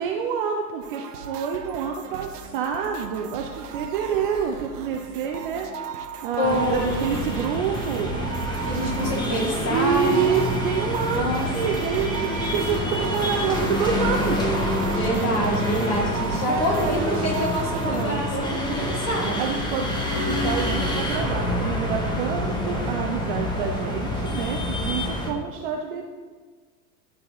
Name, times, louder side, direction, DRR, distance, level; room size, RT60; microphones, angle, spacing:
voice 1, 0.0-5.7 6.2-8.2 9.7-14.5 16.5-18.9 19.4-26.1, right 7 dB, 35° right, 2 dB, 0.4 m, -28 dB
sound 1, 0.8-18.0, right 8 dB, 70° right, 0.8 m, -37 dB
voice 2, 6.4-7.1 8.6-10.4 11.1-11.5 14.9-19.5, equal, 30° left, -2 dB, 1.9 m, -26 dB
sound 2, 6.4-25.3, left 1 dB, 10° left, 0.6 m, -27 dB
11.0 x 4.1 x 2.9 m, 1.5 s
figure-of-eight pair, 90°, 50 cm